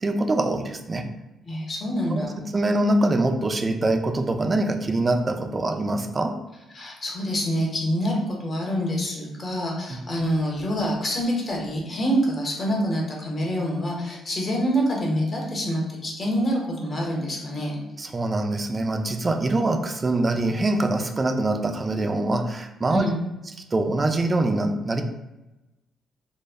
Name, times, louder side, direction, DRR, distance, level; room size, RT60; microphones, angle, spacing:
voice 1, 0.0-1.0 2.1-2.3 2.5-6.3 9.9-10.0 18.0-23.1 23.7-25.0, right 2 dB, 30° right, 5 dB, 0.3 m, -24 dB
voice 2, 1.4-2.4 6.7-17.8 22.9-23.2, equal, 40° left, -2 dB, 0.8 m, -26 dB
2.0 x 2.0 x 3.4 m, 0.98 s
cardioid pair, 90°, 0 cm